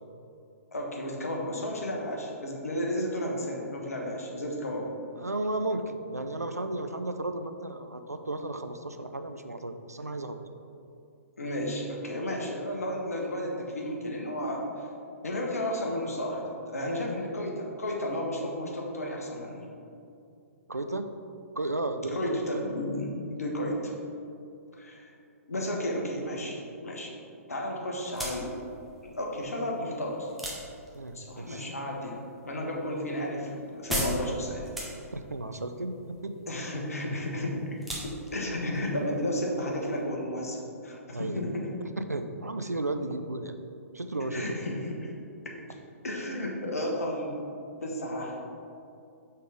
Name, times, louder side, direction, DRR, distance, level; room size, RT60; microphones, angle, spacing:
voice 1, 0.7-4.9 11.4-14.6 15.2-19.6 22.1-23.9 24.8-25.1 25.5-27.1 27.5-28.5 29.1-30.3 31.1-34.7 36.5-37.8 38.0-40.6 40.8-41.7 44.3-45.1 46.0-47.4 47.8-48.4, left 1 dB, 75° left, 0 dB, 1.1 m, -33 dB
voice 2, 5.2-10.4 20.7-21.1 21.5-22.7 30.9-31.7 35.1-36.3 41.1-41.4 42.1-43.6 43.9-44.6, right 2 dB, 90° right, 8 dB, 0.4 m, -34 dB
sound 1, 28.0-40.0, equal, ahead, 0.8 m, -40 dB
5.5 x 3.7 x 4.8 m, 2.6 s
figure-of-eight pair, 120°, 8 cm